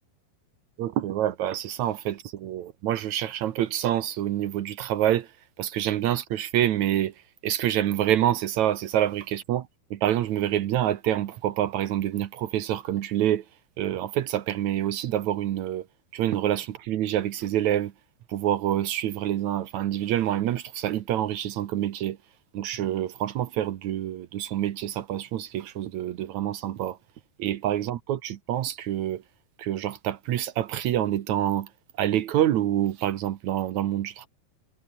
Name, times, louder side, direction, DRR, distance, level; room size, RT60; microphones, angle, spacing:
voice 1, 0.8-5.3 5.6-7.1 7.4-13.4 13.8-15.9 16.1-17.9 18.3-22.2 22.5-27.0 27.4-29.2 29.6-31.7 32.0-34.3, right 12 dB, 65° right, 1.9 m, -27 dB
omnidirectional pair, 4.5 m